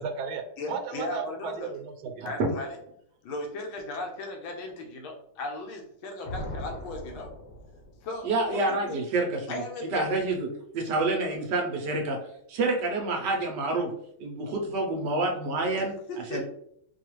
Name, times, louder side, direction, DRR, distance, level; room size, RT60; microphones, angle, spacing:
voice 1, 0.0-2.3, right 6 dB, 85° right, 7 dB, 1.4 m, -35 dB
voice 2, 0.6-1.7 2.2-2.8 3.2-7.3 8.0-8.6 8.9-9.0 9.5-10.1 15.8-16.4, left 2 dB, 90° left, 2 dB, 1.6 m, -37 dB
sound 1, 6.2-8.2, left 1 dB, 70° left, 1.3 m, -39 dB
voice 3, 8.2-9.5 9.9-10.5 10.7-12.2 12.5-13.9 14.2-15.9 16.3-16.4, right 2 dB, 70° right, 1 dB, 1.2 m, -27 dB
4.7 x 2.4 x 3.0 m, 0.70 s
omnidirectional pair, 2.2 m